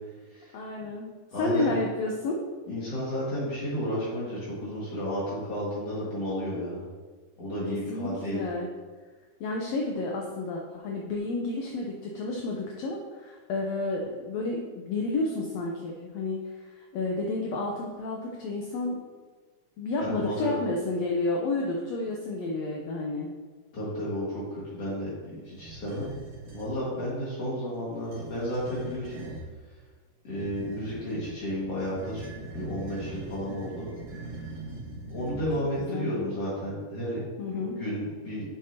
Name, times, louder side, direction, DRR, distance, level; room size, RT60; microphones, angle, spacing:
voice 1, 0.5-2.4 7.7-8.7 9.4-19.0 19.8-23.3 35.3-35.4 35.8-36.1 37.4-37.8, left 2 dB, 75° left, -1 dB, 1.6 m, -31 dB
voice 2, 1.3-1.7 2.7-6.8 7.4-8.4 20.0-20.6 23.7-26.1 26.5-29.3 30.2-32.3 32.5-33.9 35.1-37.2 37.5-38.4, equal, 50° left, -8 dB, 2.8 m, -32 dB
sound 1, 25.5-26.8 27.9-29.5 30.3-35.8, right 2 dB, 60° right, 3.0 m, -42 dB
8.5 x 7.5 x 2.9 m, 1.4 s
omnidirectional pair, 3.7 m